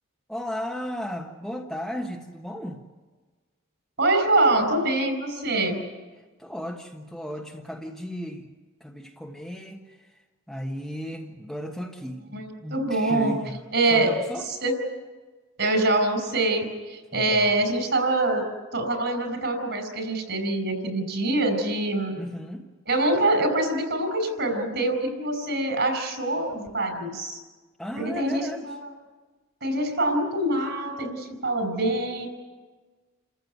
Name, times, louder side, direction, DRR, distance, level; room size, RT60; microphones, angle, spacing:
voice 1, 0.3-2.8 6.4-8.5 8.8-10.2 10.5-13.5 13.9-14.4 17.1-17.3 22.2-22.7 27.8-28.7, equal, ahead, 0 dB, 1.4 m, -35 dB
voice 2, 4.0-5.8 12.3-13.4 13.7-14.1 14.4-14.7 15.6-18.5 18.7-22.2 22.9-27.4 28.0-28.9 29.6-32.3, right 2 dB, 55° right, 7 dB, 5.3 m, -25 dB
29.5 x 15.0 x 9.4 m, 1.3 s
head